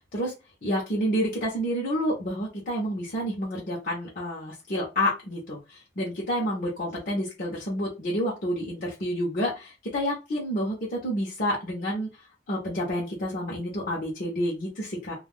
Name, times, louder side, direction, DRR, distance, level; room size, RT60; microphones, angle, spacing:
voice 1, 0.6-12.1 12.5-15.1, equal, 50° left, -4 dB, 0.8 m, -29 dB
2.3 x 2.3 x 3.5 m, 0.28 s
head